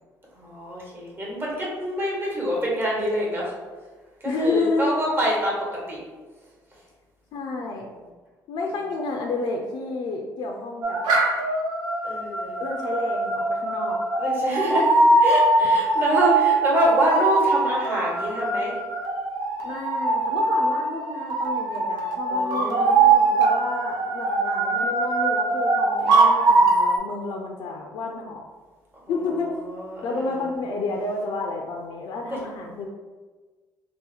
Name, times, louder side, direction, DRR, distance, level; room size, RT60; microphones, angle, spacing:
voice 1, 0.4-3.5 4.2-5.6 5.9-6.0 12.0-12.6 14.2-15.0 15.2-18.7 22.3-23.4 29.8-30.1, equal, 30° right, -4 dB, 1.2 m, -26 dB
voice 2, 4.2-4.9 7.3-7.9 8.5-11.0 12.6-14.0 19.6-23.0 23.4-28.5 29.1-29.6 30.0-32.9, left 3 dB, 70° left, 1 dB, 0.4 m, -30 dB
sound 1, 10.8-27.0, right 3 dB, 85° right, 0.6 m, -22 dB
2.8 x 2.1 x 3.9 m, 1.3 s
cardioid pair, 85°, 8 cm